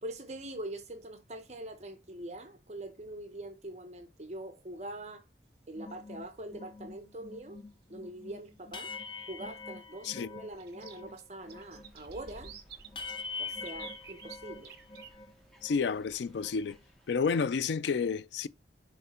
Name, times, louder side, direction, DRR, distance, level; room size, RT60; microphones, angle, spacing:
voice 1, 0.0-5.2 5.7-7.6 7.9-8.9 9.3-12.5 13.4-14.7, right 1 dB, 40° right, 0.9 m, -43 dB
sound 1, 5.8-11.2 11.5-15.3 15.6-16.8, left 4 dB, 25° left, 0.5 m, -45 dB
sound 2, 5.8-6.1 7.7-7.8 8.2-8.3 10.6-15.1, right 9 dB, 60° right, 1.2 m, -50 dB
sound 3, 11.4-17.7, equal, ahead, 1.3 m, -59 dB
voice 2, 15.6-16.8 17.1-18.5, left 5 dB, 75° left, 0.4 m, -30 dB
7.2 x 3.2 x 4.3 m
head